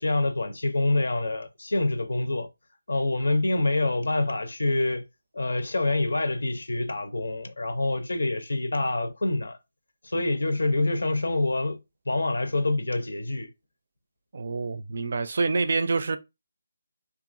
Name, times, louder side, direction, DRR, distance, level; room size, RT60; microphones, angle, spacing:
voice 1, 0.0-2.5 2.9-5.0 5.3-9.6 10.0-11.8 12.1-13.5, left 2 dB, 85° left, 0.6 m, -26 dB
voice 2, 14.3-16.2, right 4 dB, 55° right, 0.4 m, -26 dB
2.9 x 2.4 x 2.5 m
figure-of-eight pair, 165°, 0 cm